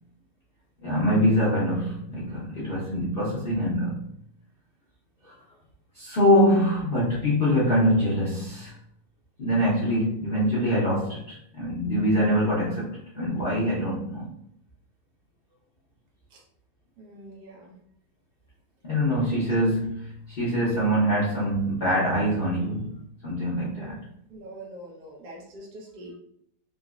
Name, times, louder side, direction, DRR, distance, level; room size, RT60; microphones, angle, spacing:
voice 1, 0.8-4.0 5.2-5.3 5.9-8.7 9.4-14.3 18.8-23.0 23.2-24.0, equal, 75° left, -8 dB, 0.5 m, -24 dB
voice 2, 17.0-17.8 19.1-19.4 23.8-24.0 24.3-26.1, right 1 dB, 65° right, -2 dB, 1.3 m, -44 dB
3.8 x 2.1 x 2.3 m, 0.70 s
omnidirectional pair, 2.0 m